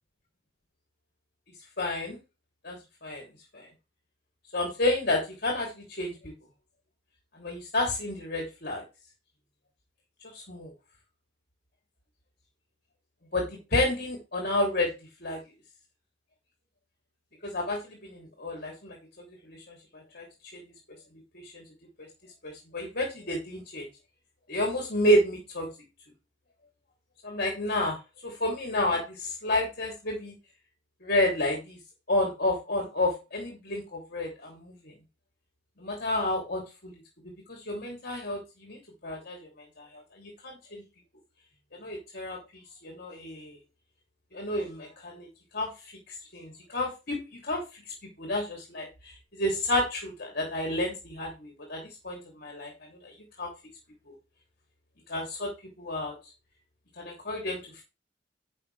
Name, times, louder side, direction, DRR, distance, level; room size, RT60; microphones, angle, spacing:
voice 1, 1.8-2.2 2.6-3.2 3.5-3.7 4.5-6.1 7.3-8.8 10.3-10.7 13.3-14.9 15.2-15.4 17.4-19.0 19.4-19.6 19.9-20.2 20.5-20.6 21.4-21.6 22.4-23.8 24.5-25.7 27.2-28.0 28.2-30.3 31.0-31.8 32.1-34.9 35.8-36.9 37.5-39.5 39.8-40.8 41.8-42.4 42.8-43.6 44.3-45.3 45.5-45.7 46.1-47.8 48.2-52.7 53.0-53.5 54.1-54.2 55.1-55.5 55.8-56.2 57.0-57.8, left 1 dB, 55° left, 0 dB, 3.2 m, -30 dB
11.0 x 6.7 x 3.4 m, 0.27 s
head